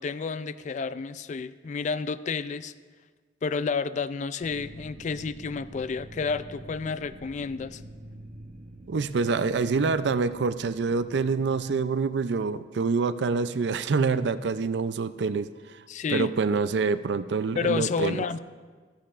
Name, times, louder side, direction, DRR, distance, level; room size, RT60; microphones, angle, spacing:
voice 1, 0.0-2.7 3.4-7.8 15.9-16.3 17.6-18.4, left 5 dB, 40° left, 14 dB, 0.3 m, -30 dB
sound 1, 4.4-11.6, right 1 dB, 45° right, 1.0 m, -46 dB
voice 2, 8.9-15.8 16.1-18.2, right 4 dB, 70° right, 13 dB, 0.4 m, -26 dB
16.0 x 13.5 x 2.5 m, 1.5 s
head